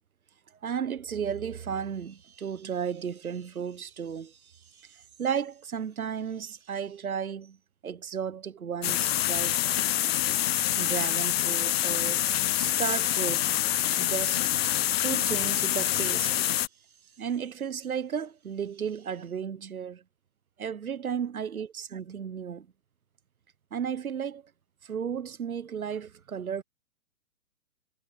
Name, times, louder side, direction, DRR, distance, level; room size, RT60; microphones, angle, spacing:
voice 1, 0.6-7.6 7.8-9.6 10.8-12.2 12.6-13.5 14.0-14.5 15.0-16.5 17.2-20.0 20.6-22.7 23.7-24.4 24.8-26.6, right 7 dB, 85° right, 1.1 m, -34 dB
sound 1, 8.8-16.7, left 13 dB, 45° left, 0.9 m, -26 dB
hypercardioid pair, 130°, 42 cm